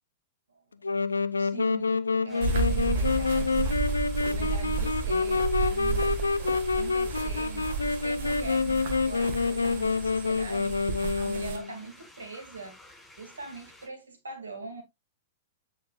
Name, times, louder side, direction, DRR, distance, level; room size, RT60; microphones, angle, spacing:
voice 1, 0.5-0.9 1.4-6.2 6.7-12.8 13.2-14.8, right 3 dB, 80° right, 2.5 m, -42 dB
Wind instrument woodwind instrument, 0.8-11.7, left 4 dB, 85° left, 0.5 m, -27 dB
sound 1, 2.3-13.9, left 1 dB, 10° left, 5.1 m, -53 dB
sound 2, 2.4-11.6, right 4 dB, 60° right, 1.8 m, -32 dB
8.9 x 5.3 x 2.5 m
figure-of-eight pair, 105°, 0 cm